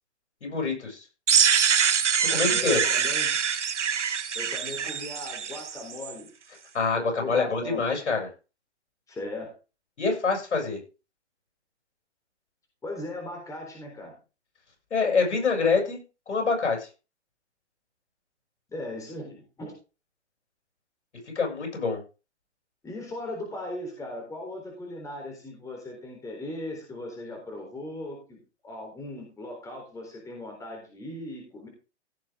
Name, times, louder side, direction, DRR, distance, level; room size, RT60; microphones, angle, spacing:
voice 1, 0.4-1.0 2.2-2.8 6.7-8.3 10.0-10.8 14.9-16.0 16.3-16.9 21.3-22.0, left 4 dB, 80° left, 1 dB, 7.7 m, -26 dB
sound 1, 1.3-6.1, right 7 dB, 85° right, 1.3 m, -24 dB
voice 2, 2.3-3.3 4.3-6.3 6.9-7.8 9.1-9.5 12.8-14.2 18.7-19.7 22.8-31.7, left 1 dB, 10° left, 1 dB, 3.8 m, -38 dB
16.5 x 7.5 x 3.8 m, 0.32 s
hypercardioid pair, 140°, 35 cm